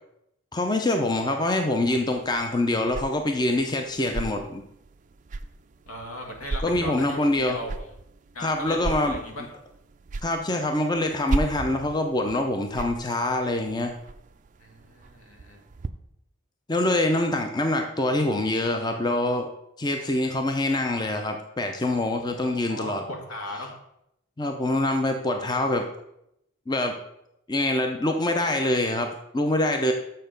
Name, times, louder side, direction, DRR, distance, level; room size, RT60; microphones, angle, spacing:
voice 1, 0.5-4.6 6.6-7.6 8.4-9.2 10.2-14.0 16.7-19.5 19.8-23.0 24.4-25.9 26.7-27.0 27.5-29.9, left 1 dB, 20° left, 5 dB, 0.5 m, -25 dB
sound 1, 1.8-15.9, right 3 dB, 35° right, 0.4 m, -37 dB
voice 2, 5.9-7.9 8.3-9.5 14.6-15.6 22.4-23.8, left 1 dB, 80° left, 2 dB, 1.7 m, -37 dB
6.8 x 6.5 x 5.2 m, 0.80 s
head